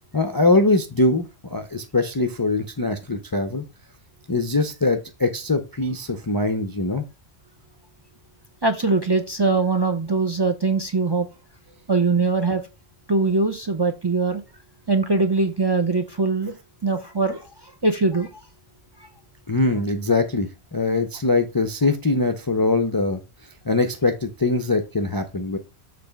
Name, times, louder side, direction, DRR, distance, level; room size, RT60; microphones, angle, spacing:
voice 1, 0.1-3.6 4.3-7.0 19.5-23.2 23.7-25.6, left 2 dB, 30° left, 6 dB, 0.4 m, -22 dB
voice 2, 8.6-11.3 11.9-12.6 13.1-14.4 14.9-16.5 16.8-17.4 17.8-18.3, right 3 dB, 30° right, 7 dB, 0.5 m, -21 dB
6.9 x 3.3 x 5.0 m, 0.28 s
omnidirectional pair, 1.1 m